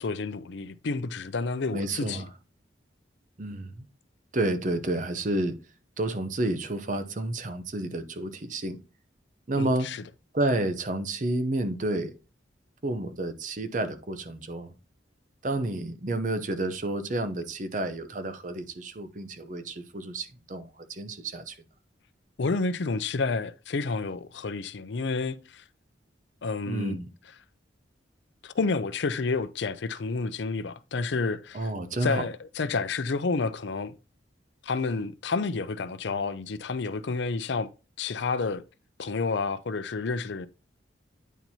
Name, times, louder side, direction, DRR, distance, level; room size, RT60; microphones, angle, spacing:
voice 1, 0.0-2.2 9.6-10.0 22.4-25.6 26.4-27.0 28.4-31.7 32.0-33.9 34.6-37.7 38.0-38.6 39.0-40.5, left 4 dB, 70° left, 0.5 m, -30 dB
voice 2, 1.7-2.3 3.4-3.9 4.3-5.5 6.0-8.8 9.5-9.9 10.3-12.1 12.8-14.7 15.4-21.6 26.7-27.1 31.5-32.3, right 1 dB, 40° right, 0.6 m, -30 dB
9.1 x 4.4 x 2.7 m
head